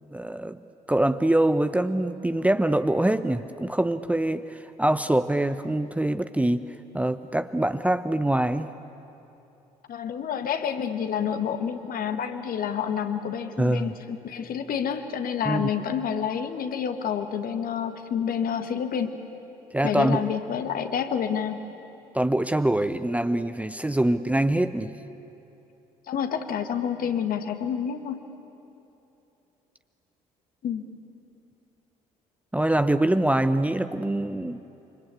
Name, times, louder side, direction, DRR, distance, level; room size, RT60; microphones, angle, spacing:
voice 1, 0.1-0.6 0.9-6.6 6.9-8.7 13.6-13.9 15.5-15.7 19.7-20.3 22.1-25.0 32.5-34.6, right 1 dB, 5° right, 11 dB, 0.8 m, -24 dB
voice 2, 9.9-19.2 19.8-21.7 26.1-28.2 30.6-30.9, left 8 dB, 50° left, 7 dB, 1.8 m, -28 dB
26.5 x 25.0 x 8.5 m, 2.9 s
figure-of-eight pair, 50°, 19 cm